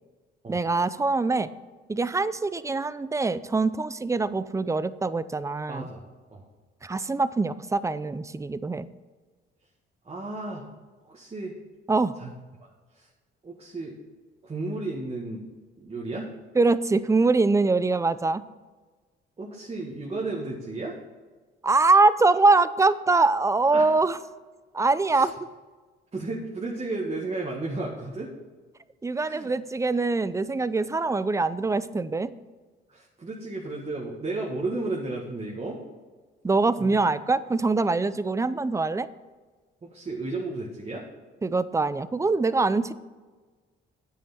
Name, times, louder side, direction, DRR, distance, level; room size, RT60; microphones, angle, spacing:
voice 1, 0.5-1.5 1.9-5.9 6.8-8.9 11.9-12.2 16.6-18.4 21.6-24.2 24.7-25.3 29.0-32.3 36.4-39.1 41.4-42.9, right 3 dB, 15° right, 15 dB, 0.5 m, -23 dB
voice 2, 5.7-6.0 6.3-6.5 10.0-10.6 11.0-11.5 12.2-12.3 12.6-13.1 13.4-13.9 14.4-15.4 15.8-16.3 19.4-21.0 23.7-24.0 25.1-25.3 26.1-28.3 29.1-29.5 32.9-35.8 36.8-36.9 39.8-41.1, right 2 dB, 30° right, -2 dB, 1.8 m, -33 dB
9.6 x 8.4 x 4.3 m, 1.3 s
cardioid pair, 90°, 20 cm